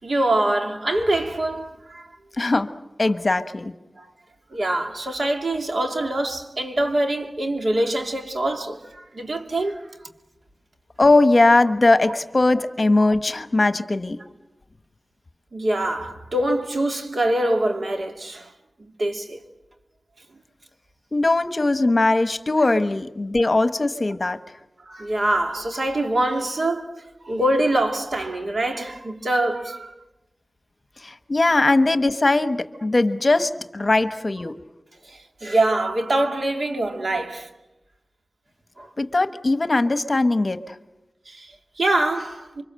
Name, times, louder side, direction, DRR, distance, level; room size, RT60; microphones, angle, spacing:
voice 1, 0.0-2.1 4.0-4.1 4.5-9.9 12.1-12.2 13.0-13.1 15.5-18.5 18.8-19.4 22.7-22.8 24.8-29.9 35.0-37.5 38.8-38.9 41.3-42.6, right 1 dB, 65° right, 2.5 m, -24 dB
voice 2, 2.4-2.7 3.0-3.7 11.0-14.2 21.1-24.4 31.0-34.5 39.0-40.7, left 2 dB, 40° left, 1.2 m, -20 dB
28.5 x 24.5 x 7.7 m
wide cardioid pair, 90°, 0 cm